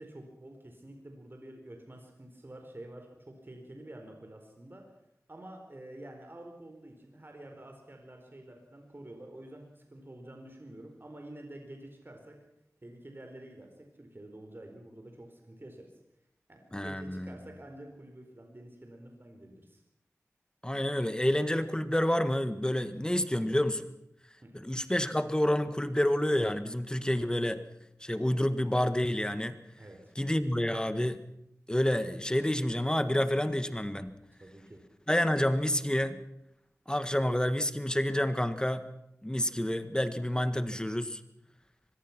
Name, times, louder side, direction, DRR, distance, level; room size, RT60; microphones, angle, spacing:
voice 1, 0.0-4.8 5.3-12.3 12.8-15.9 16.5-19.8 24.4-24.5 29.8-30.1 34.4-34.8, right 1 dB, 40° right, 3 dB, 4.5 m, -48 dB
voice 2, 16.7-17.4 20.6-23.9 24.5-27.6 28.0-29.6 30.1-31.2 31.7-34.1 35.1-36.2 36.9-38.9 39.2-41.2, left 1 dB, 15° left, 11 dB, 1.7 m, -29 dB
24.5 x 21.0 x 6.1 m, 0.80 s
cardioid pair, 40°, 6 cm